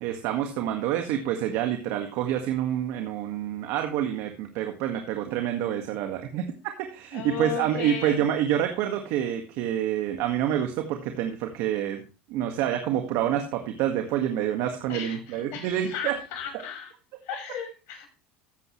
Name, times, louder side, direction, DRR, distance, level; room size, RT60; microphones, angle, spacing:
voice 1, 0.0-6.5 6.8-12.0 12.3-16.2, right 10 dB, 65° right, 5 dB, 1.8 m, -27 dB
voice 2, 7.1-8.2 14.9-16.9 17.2-18.1, left 7 dB, 60° left, 1 dB, 6.1 m, -35 dB
15.0 x 7.8 x 3.2 m, 0.34 s
supercardioid pair, 105°, 5 cm